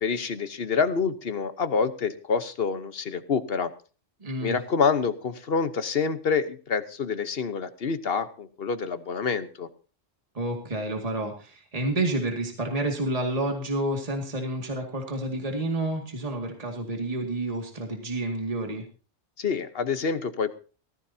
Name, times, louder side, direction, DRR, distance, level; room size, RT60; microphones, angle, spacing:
voice 1, 0.0-3.7 4.4-9.7 19.4-20.5, left 5 dB, 50° left, 11 dB, 1.2 m, -27 dB
voice 2, 4.2-4.6 10.3-18.8, right 1 dB, 30° right, 3 dB, 2.3 m, -29 dB
18.5 x 15.0 x 2.8 m, 0.36 s
omnidirectional pair, 1.3 m